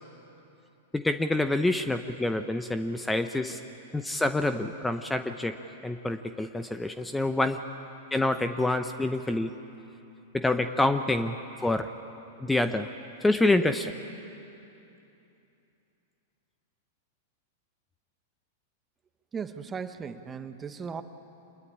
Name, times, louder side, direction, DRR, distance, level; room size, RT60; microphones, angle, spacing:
voice 1, 0.9-3.6 3.9-5.6 5.8-7.6 8.1-9.5 10.3-11.9 12.4-12.9 13.2-13.9, left 2 dB, 5° left, 9 dB, 0.9 m, -27 dB
voice 2, 19.3-21.0, right 6 dB, 20° right, 9 dB, 1.2 m, -37 dB
25.5 x 21.0 x 9.9 m, 2.8 s
hypercardioid pair, 115°, 0 cm